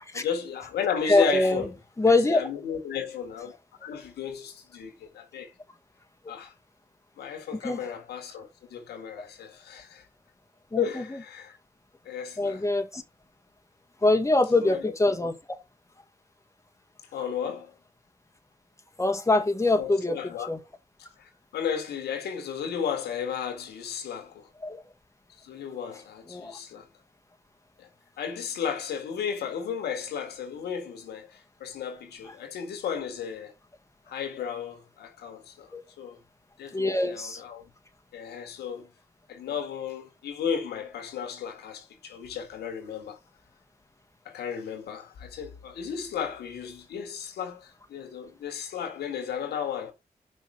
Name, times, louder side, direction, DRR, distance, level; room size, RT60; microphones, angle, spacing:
voice 1, 0.1-1.8 2.1-5.5 6.3-6.5 7.2-10.1 10.8-11.6 12.0-12.7 14.5-14.9 17.1-17.7 19.7-20.5 21.2-24.5 25.4-26.9 27.8-27.9 28.2-33.5 34.1-36.2 36.6-37.6 38.1-38.9 39.3-43.2 44.3-49.9, left 7 dB, 90° left, 1.8 m, -34 dB
voice 2, 1.1-1.6 2.0-2.4 7.6-7.8 10.7-10.8 12.4-13.0 14.0-15.3 19.0-20.2 20.5-20.6 24.6-24.8 26.3-26.5 35.7-35.8 36.7-37.4, left 2 dB, 20° left, 1.8 m, -23 dB
5.9 x 5.7 x 6.2 m
cardioid pair, 55°, 16 cm